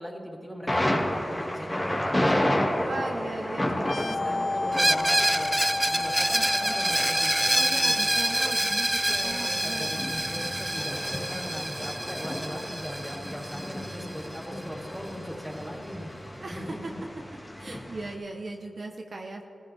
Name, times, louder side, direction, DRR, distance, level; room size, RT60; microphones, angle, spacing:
voice 1, 0.0-3.2 3.8-8.0 9.0-17.0, equal, ahead, -2 dB, 3.7 m, -39 dB
Thunder, 0.7-18.1, left 1 dB, 25° left, 2.2 m, -32 dB
voice 2, 2.8-4.6 7.5-9.9 16.4-16.9 17.6-19.4, right 2 dB, 60° right, 1 dB, 1.1 m, -38 dB
sound 1, 3.8-11.3, left 2 dB, 65° left, 0.5 m, -34 dB
Screech, 4.7-14.4, right 1 dB, 15° right, 0.3 m, -27 dB
19.5 x 15.5 x 3.5 m, 2.8 s
cardioid pair, 45°, 0 cm